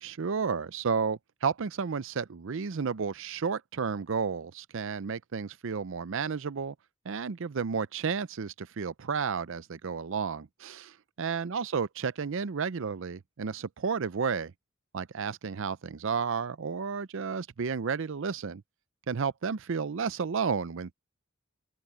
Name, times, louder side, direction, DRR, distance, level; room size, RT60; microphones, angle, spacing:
voice 1, 0.0-6.7 7.1-14.5 14.9-18.6 19.1-20.9, right 5 dB, 65° right, 0.5 m, -32 dB
open air
head